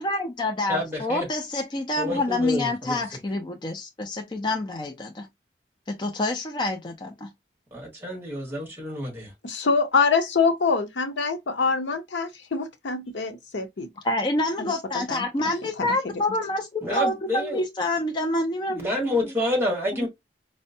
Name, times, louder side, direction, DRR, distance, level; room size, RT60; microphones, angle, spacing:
voice 1, 0.0-5.3 5.9-7.3 14.0-18.8 19.2-19.3 20.0-20.1, left 1 dB, 25° left, 0.4 m, -27 dB
voice 2, 0.7-1.3 2.0-3.0 7.7-9.3 16.8-17.6 18.7-20.1, left 1 dB, 10° right, 1.6 m, -28 dB
voice 3, 9.4-13.9 14.6-15.3 15.8-16.2, left 4 dB, 80° left, 0.6 m, -25 dB
4.3 x 2.1 x 2.6 m
head